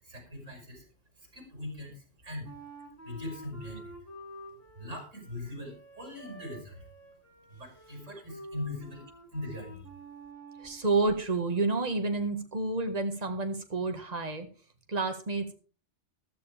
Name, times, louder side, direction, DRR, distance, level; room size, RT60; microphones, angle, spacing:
voice 1, 0.0-0.9 1.2-2.5 3.0-4.0 4.8-6.8 7.5-9.9, left 1 dB, 85° right, 2 dB, 5.9 m, -41 dB
Wind instrument woodwind instrument, 2.4-10.9, right 1 dB, 10° left, 5.5 m, -49 dB
voice 2, 10.6-14.5 14.9-15.5, right 3 dB, 35° right, 6 dB, 1.8 m, -29 dB
15.0 x 13.0 x 3.5 m, 0.37 s
omnidirectional pair, 1.3 m